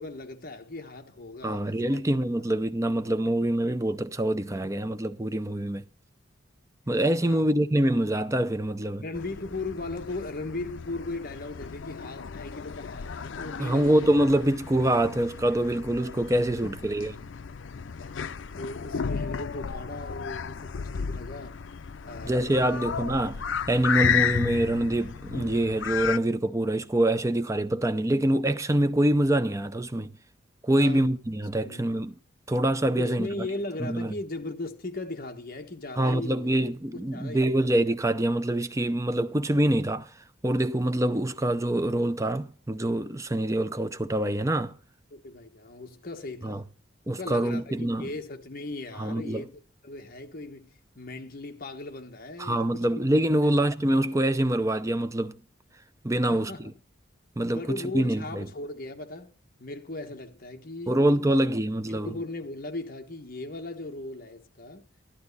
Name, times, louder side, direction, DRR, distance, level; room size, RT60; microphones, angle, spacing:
voice 1, 0.0-2.0 3.2-3.4 7.2-7.5 9.0-14.1 16.6-16.9 18.0-18.2 18.5-21.6 22.0-22.8 30.8-31.1 31.6-31.9 32.9-36.5 36.9-37.7 45.1-46.7 47.2-53.0 53.4-53.6 56.2-56.7 57.5-59.3 59.6-61.4 61.9-64.8, left 2 dB, 45° left, 1.2 m, -38 dB
voice 2, 1.4-5.8 6.9-9.0 13.6-17.1 22.2-23.4 23.7-30.1 30.6-32.1 32.5-33.3 33.8-34.1 36.0-40.1 40.4-44.8 46.4-46.6 47.1-48.1 49.0-49.4 52.4-55.3 56.0-56.7 57.4-58.4 60.9-62.1, right 1 dB, 15° right, 0.6 m, -25 dB
sound 1, 9.1-26.2, left 7 dB, 70° left, 0.5 m, -33 dB
11.5 x 11.5 x 4.0 m
head